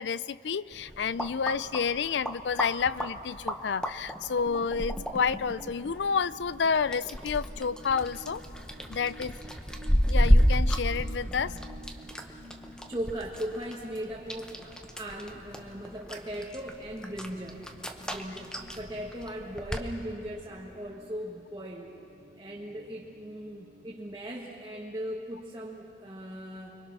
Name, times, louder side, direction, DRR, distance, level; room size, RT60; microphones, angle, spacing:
voice 1, 0.0-8.4 8.9-9.3 10.1-11.6, left 6 dB, 85° left, 18 dB, 0.5 m, -30 dB
sound 1, 0.7-19.9, equal, 5° left, 1.0 m, -31 dB
sound 2, 4.4-24.2, right 1 dB, 85° right, 3.3 m, -53 dB
voice 2, 11.3-11.7 12.6-17.7 18.1-21.9 22.4-26.7, equal, 25° right, -4 dB, 1.6 m, -38 dB
30.0 x 23.5 x 6.1 m, 2.8 s
head